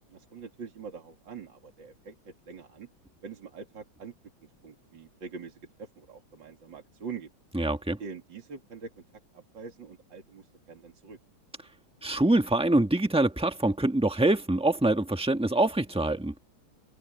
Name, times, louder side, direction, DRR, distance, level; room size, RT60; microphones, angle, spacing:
voice 1, 0.1-2.9 3.2-4.1 4.6-7.3 8.0-9.0 9.3-11.2, right 5 dB, 65° right, 3.4 m, -44 dB
voice 2, 7.5-8.0 12.0-16.4, right 2 dB, 5° right, 1.3 m, -25 dB
omnidirectional pair, 2.2 m